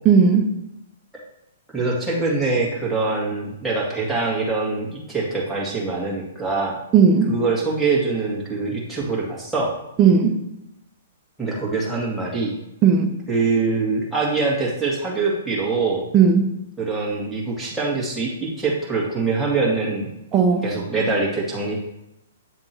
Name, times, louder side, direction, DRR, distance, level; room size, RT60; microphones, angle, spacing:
voice 1, 0.0-0.5 6.9-7.3 10.0-10.3 12.8-13.1 16.1-16.4 20.3-20.6, right 6 dB, 25° right, 3 dB, 0.9 m, -15 dB
voice 2, 1.7-6.8 7.3-9.7 11.4-12.5 13.3-16.1 16.8-20.1 20.6-21.7, right 3 dB, 5° right, -6 dB, 1.9 m, -24 dB
8.1 x 3.5 x 4.4 m, 0.86 s
hypercardioid pair, 145°, 0 cm